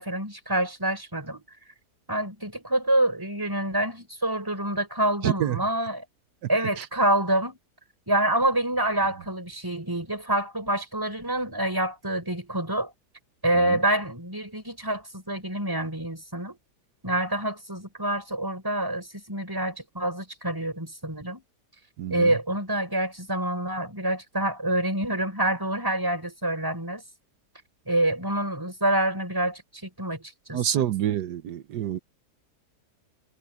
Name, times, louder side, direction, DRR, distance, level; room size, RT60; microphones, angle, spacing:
voice 1, 0.0-1.4 2.1-6.0 6.5-7.6 8.1-12.9 13.4-16.6 17.0-21.4 22.1-27.0 27.9-30.9, right 1 dB, 10° right, 4.6 m, -27 dB
voice 2, 5.2-5.6 22.0-22.1 30.5-32.0, right 11 dB, 80° right, 1.4 m, -26 dB
omnidirectional pair, 1.7 m